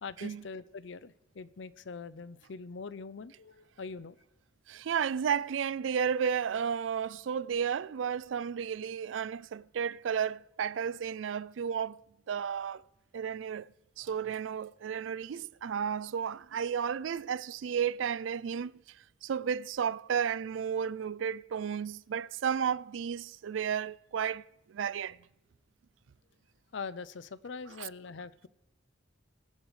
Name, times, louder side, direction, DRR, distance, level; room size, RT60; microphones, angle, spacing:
voice 1, 0.0-4.2 26.7-28.5, left 4 dB, 70° left, 0.6 m, -43 dB
voice 2, 4.7-12.0 12.3-12.8 13.1-13.7 14.0-18.7 19.2-24.4 24.7-25.2 27.8-27.9, right 7 dB, 85° right, 0.4 m, -33 dB
21.0 x 8.1 x 3.2 m
head